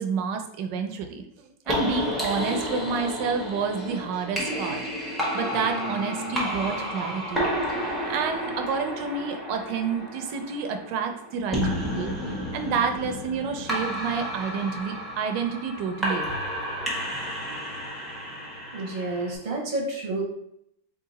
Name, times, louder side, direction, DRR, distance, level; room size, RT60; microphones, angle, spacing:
voice 1, 0.0-7.5 7.8-16.3, right 5 dB, 75° right, 5 dB, 1.1 m, -29 dB
sound 1, 1.6-19.3, equal, ahead, 0.3 m, -31 dB
sound 2, 3.8-7.4 7.9-8.1 8.7-8.9 9.7-10.1, right 2 dB, 40° left, 1.6 m, -41 dB
voice 2, 18.7-20.2, right 2 dB, 40° right, -1 dB, 0.7 m, -29 dB
3.7 x 2.7 x 4.0 m, 0.75 s
omnidirectional pair, 2.1 m